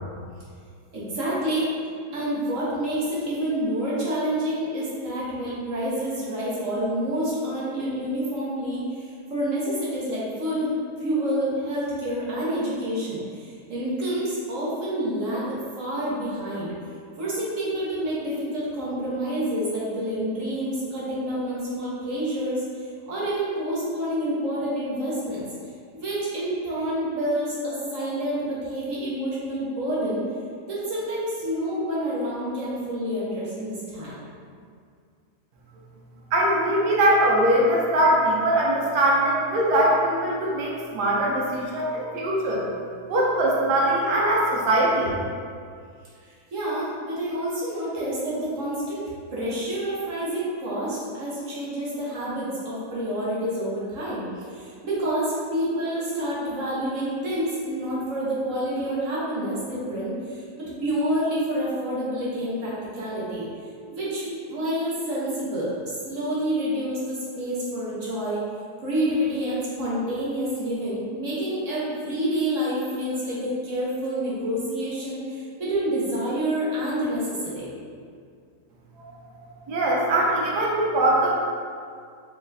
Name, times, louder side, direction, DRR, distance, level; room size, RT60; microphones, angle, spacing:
voice 1, 0.9-1.7 2.1-10.7 11.0-16.7 17.2-25.4 25.9-30.2 30.7-34.2 46.2-49.0 49.3-63.5 63.9-68.4 68.8-77.7, right 1 dB, 55° right, -8 dB, 1.2 m, -28 dB
voice 2, 36.3-42.6 43.1-45.1 79.0-79.1 79.7-81.4, right 1 dB, 80° right, -4 dB, 1.3 m, -21 dB
4.1 x 3.3 x 2.7 m, 2.2 s
omnidirectional pair, 1.7 m